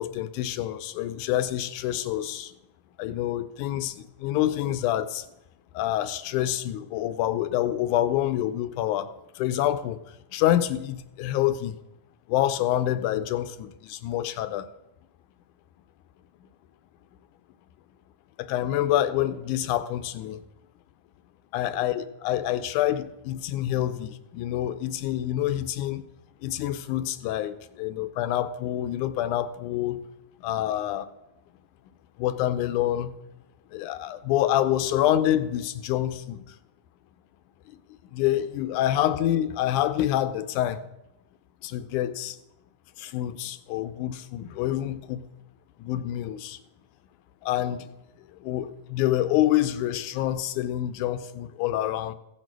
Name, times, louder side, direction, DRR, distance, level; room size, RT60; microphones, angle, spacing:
voice 1, 0.0-2.5 3.0-5.2 5.7-9.1 9.4-10.0 10.3-11.8 12.3-14.7 18.4-20.4 21.5-26.0 26.4-30.0 30.4-31.1 32.2-33.2 33.7-36.4 38.1-40.8 41.6-42.4 43.0-45.2 45.8-46.6 47.4-47.9 48.4-52.1, left 12 dB, 80° left, 2.1 m, -27 dB
16.0 x 6.5 x 6.1 m
omnidirectional pair, 3.5 m